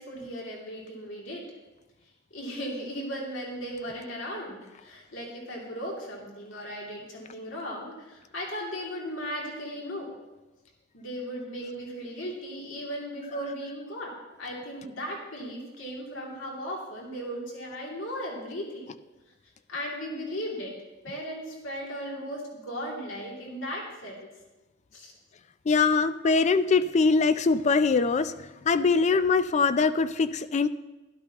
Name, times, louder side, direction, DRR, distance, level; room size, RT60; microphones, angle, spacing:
voice 1, 0.0-1.4 2.3-10.1 10.9-18.9 19.7-20.7 21.0-24.2 24.9-25.1, equal, 75° left, -3 dB, 2.7 m, -36 dB
voice 2, 25.7-28.3 28.6-30.7, left 4 dB, 35° left, 13 dB, 0.4 m, -22 dB
12.0 x 12.0 x 2.9 m, 1.1 s
head